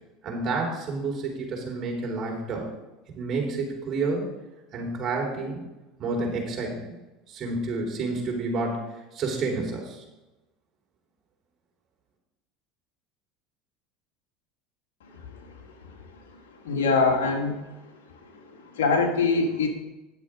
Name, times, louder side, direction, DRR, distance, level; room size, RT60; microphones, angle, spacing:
voice 1, 0.2-2.7 3.1-4.3 4.7-5.6 6.0-7.0 7.3-8.8 9.1-10.0, right 3 dB, 40° right, 0 dB, 3.9 m, -29 dB
voice 2, 16.6-17.5 18.7-19.7, left 4 dB, 90° left, 1 dB, 1.8 m, -22 dB
11.0 x 7.4 x 4.9 m, 1.0 s
supercardioid pair, 100°, 0 cm